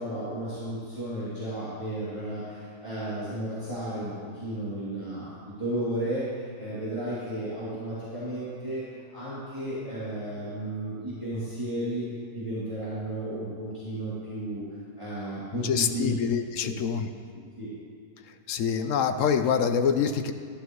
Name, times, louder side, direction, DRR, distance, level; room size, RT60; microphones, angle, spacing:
voice 1, 0.0-12.1 12.3-14.6 15.0-16.1 16.6-16.7 17.6-17.7, right 1 dB, 20° right, -13 dB, 2.8 m, -33 dB
voice 2, 15.6-17.1 18.5-20.3, left 7 dB, 65° left, 8 dB, 0.8 m, -25 dB
13.0 x 11.5 x 3.1 m, 2.2 s
omnidirectional pair, 1.6 m